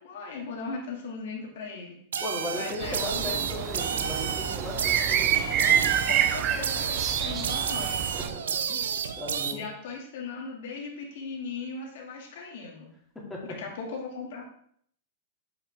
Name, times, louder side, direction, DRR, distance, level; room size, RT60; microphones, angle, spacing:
voice 1, 0.0-2.0 2.5-3.5 6.1-8.0 9.5-12.9 13.5-14.4, left 4 dB, 70° left, 0 dB, 2.3 m, -38 dB
sound 1, 2.1-9.5, right 7 dB, 85° right, 0.6 m, -31 dB
voice 2, 2.2-5.8 7.5-7.6 8.1-8.4 8.7-8.8 9.2-9.6 13.3-13.4, left 1 dB, 5° left, -5 dB, 2.5 m, -37 dB
sound 2, 2.8-8.3, right 9 dB, 35° right, 0.6 m, -28 dB
7.7 x 5.6 x 3.6 m, 0.64 s
hypercardioid pair, 130°, 0 cm